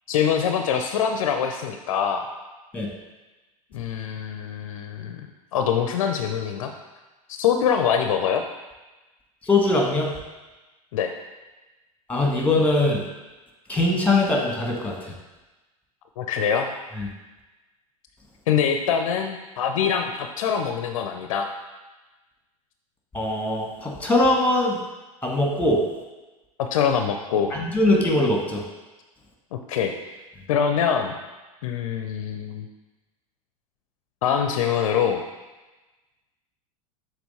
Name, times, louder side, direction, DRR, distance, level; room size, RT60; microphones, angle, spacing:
voice 1, 0.1-2.2 3.7-5.2 5.5-6.7 7.3-8.4 10.9-11.1 16.2-16.7 18.5-21.5 26.6-27.5 29.5-29.9 30.5-31.1 31.6-32.7 34.2-35.2, left 7 dB, 60° left, 5 dB, 0.5 m, -24 dB
voice 2, 9.4-10.1 12.1-13.0 13.7-15.1 17.0-17.1 23.1-24.8 25.2-25.8 27.5-28.6, left 2 dB, 10° left, 0 dB, 1.5 m, -21 dB
6.8 x 4.0 x 4.1 m, 1.1 s
figure-of-eight pair, 80°, 19 cm